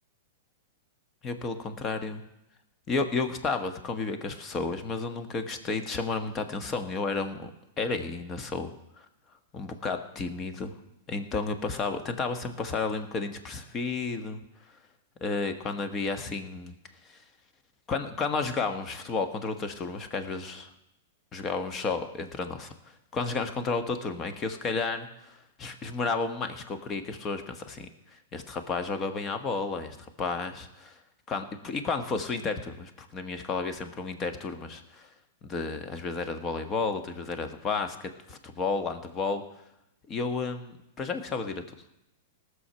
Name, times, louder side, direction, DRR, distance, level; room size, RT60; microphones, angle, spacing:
voice 1, 1.2-2.2 2.9-7.5 7.8-9.0 9.5-10.7 11.1-14.4 15.2-16.7 17.0-17.2 17.9-20.7 21.3-31.0 31.3-35.1 35.4-39.4 40.1-41.6, left 4 dB, 30° left, 8 dB, 1.4 m, -32 dB
18.5 x 6.5 x 5.7 m, 0.86 s
hypercardioid pair, 110°, 0 cm